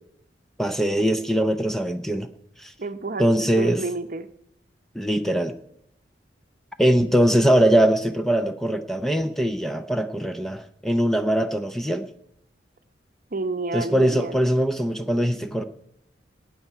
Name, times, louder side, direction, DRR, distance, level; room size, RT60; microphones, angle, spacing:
voice 1, 0.6-2.3 2.6-2.7 3.2-3.8 4.9-5.5 6.8-12.0 13.7-15.6, right 1 dB, ahead, 8 dB, 0.5 m, -22 dB
voice 2, 2.8-4.3 13.3-14.3, right 3 dB, 50° right, 10 dB, 0.8 m, -30 dB
18.5 x 9.2 x 4.6 m, 0.75 s
head